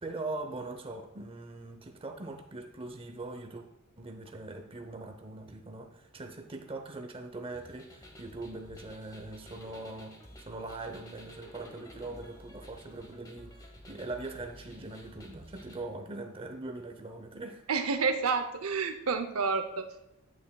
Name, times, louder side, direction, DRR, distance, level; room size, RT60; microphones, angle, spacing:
voice 1, 0.0-3.6 4.0-17.6, right 2 dB, 25° right, 5 dB, 0.6 m, -41 dB
sound 1, 7.5-15.8, equal, 15° left, 1.0 m, -52 dB
voice 2, 17.7-19.9, right 5 dB, 85° right, 8 dB, 0.6 m, -29 dB
8.4 x 8.4 x 2.3 m, 0.85 s
head